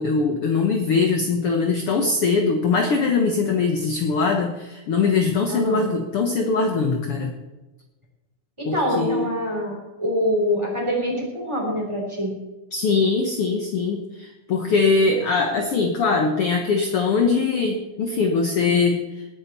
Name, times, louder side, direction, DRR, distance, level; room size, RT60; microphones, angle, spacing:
voice 1, 0.0-7.3 8.7-9.3 12.7-19.3, left 4 dB, 55° left, 3 dB, 1.8 m, -22 dB
voice 2, 5.5-5.9 8.6-12.4, equal, 10° right, -1 dB, 3.4 m, -25 dB
19.5 x 9.8 x 4.2 m, 1.1 s
omnidirectional pair, 3.6 m